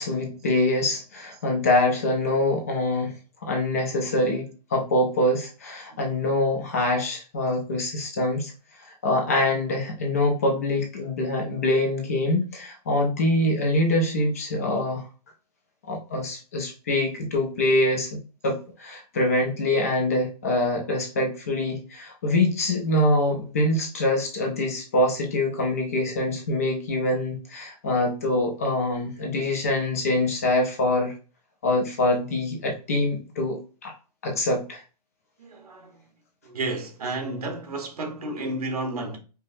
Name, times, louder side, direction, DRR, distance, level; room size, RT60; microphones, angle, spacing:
voice 1, 0.0-3.2 3.4-8.5 8.8-15.1 15.9-31.1 31.6-33.9 34.2-34.8, left 1 dB, 20° left, 0.5 m, -24 dB
voice 2, 5.9-6.4 35.4-36.0 36.4-39.2, right 2 dB, 65° right, 1.3 m, -32 dB
5.1 x 2.1 x 2.6 m
hypercardioid pair, 180°, 21 cm